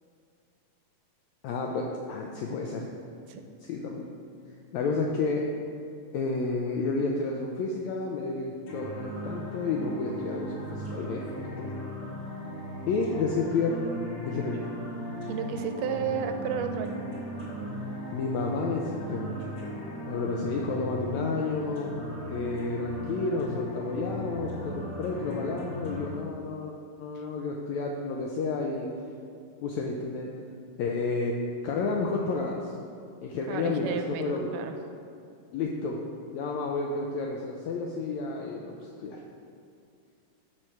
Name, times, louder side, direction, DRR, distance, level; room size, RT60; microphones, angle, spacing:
voice 1, 1.4-2.9 3.6-4.1 4.7-5.4 6.1-11.2 11.6-11.7 12.9-13.8 14.2-14.8 18.1-19.5 20.1-21.9 22.3-26.7 27.0-28.9 29.6-30.3 30.8-31.4 31.6-32.7 33.2-34.5 35.5-36.0 36.3-39.2, left 3 dB, 85° left, 0 dB, 1.6 m, -31 dB
sound 1, 8.7-26.1, equal, 30° left, 1.6 m, -37 dB
voice 2, 15.3-17.0 33.5-34.7, right 7 dB, 80° right, 7 dB, 2.1 m, -32 dB
12.5 x 4.4 x 4.6 m, 2.5 s
omnidirectional pair, 3.9 m